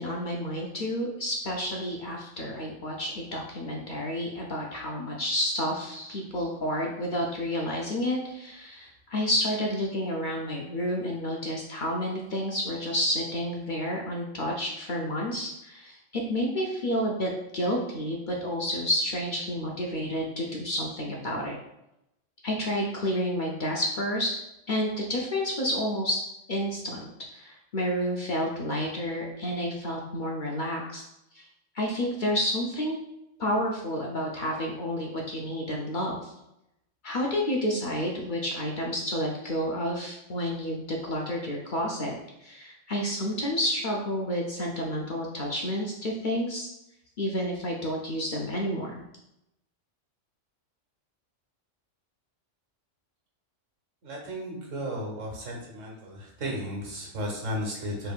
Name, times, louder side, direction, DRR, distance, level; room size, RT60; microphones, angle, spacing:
voice 1, 0.0-21.6 22.4-24.4 24.7-26.2 26.5-31.0 31.3-31.4 31.7-33.0 33.4-36.3 37.0-42.1 42.4-46.7 47.2-49.0, equal, 50° left, -2 dB, 0.6 m, -30 dB
voice 2, 54.0-58.1, equal, 80° right, 0 dB, 1.4 m, -34 dB
5.2 x 3.3 x 2.4 m, 0.87 s
omnidirectional pair, 1.3 m